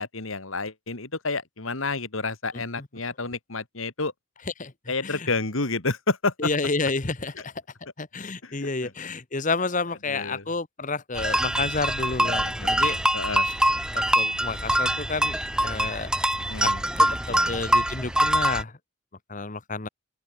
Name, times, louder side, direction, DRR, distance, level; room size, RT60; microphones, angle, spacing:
voice 1, 0.0-4.1 4.9-6.3 8.4-8.7 10.1-10.4 12.2-12.7 13.1-13.5 16.5-16.8 17.3-17.6, left 3 dB, 70° left, 2.4 m, -30 dB
voice 2, 2.5-2.9 4.4-5.3 6.4-7.5 8.0-13.0 13.4-13.5 13.9-15.4 15.6-16.1 16.6-18.8 19.3-19.9, left 3 dB, 35° left, 1.2 m, -30 dB
sound 1, 11.1-18.6, right 1 dB, 5° right, 1.1 m, -24 dB
open air
head